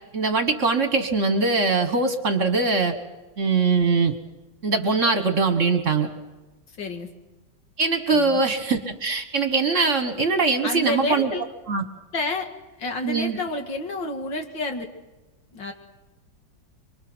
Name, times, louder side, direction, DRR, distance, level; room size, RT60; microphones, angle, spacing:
voice 1, 0.1-2.9 3.4-4.1 4.6-6.1 7.8-11.3 11.7-11.8 13.0-13.4, right 4 dB, 40° right, 7 dB, 1.7 m, -22 dB
voice 2, 6.7-7.1 8.1-8.4 10.6-11.5 12.1-12.5 12.8-14.9 15.5-15.7, left 2 dB, 70° left, 5 dB, 2.7 m, -29 dB
25.0 x 24.5 x 6.3 m, 1.1 s
omnidirectional pair, 2.1 m